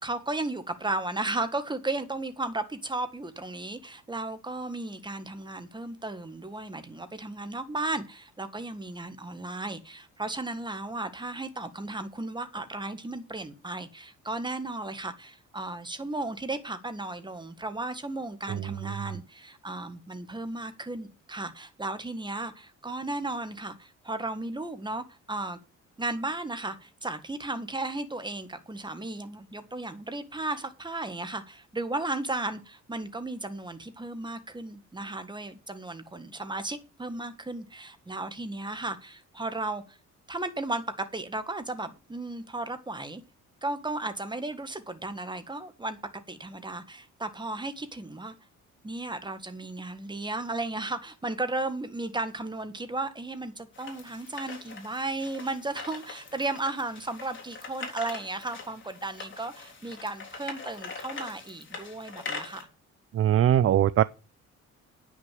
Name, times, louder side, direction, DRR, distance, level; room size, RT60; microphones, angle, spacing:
voice 1, 0.0-25.6 26.0-40.0 40.3-43.2 43.6-46.0 46.3-48.3 48.8-62.6, right 2 dB, 15° right, 1.6 m, -35 dB
sound 1, 53.7-62.6, left 4 dB, 40° left, 3.7 m, -42 dB
voice 2, 63.1-64.0, right 11 dB, 45° right, 0.5 m, -21 dB
9.7 x 6.2 x 7.5 m
cardioid pair, 90°, 30 cm